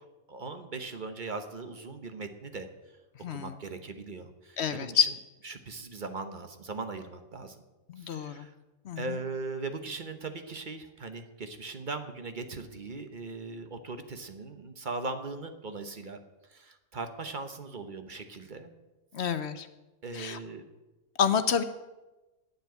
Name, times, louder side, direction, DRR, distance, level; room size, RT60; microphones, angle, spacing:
voice 1, 0.0-2.7 3.3-5.1 5.4-7.6 8.0-8.5 9.0-16.2 16.5-18.7 20.0-20.6, right 3 dB, 40° right, 8 dB, 1.0 m, -39 dB
voice 2, 3.2-3.5 4.6-5.1 7.9-8.5 8.9-9.0 19.1-19.7 20.1-20.4 21.2-21.6, left 7 dB, 60° left, 11 dB, 0.9 m, -28 dB
9.2 x 7.6 x 9.2 m, 1.1 s
omnidirectional pair, 1.5 m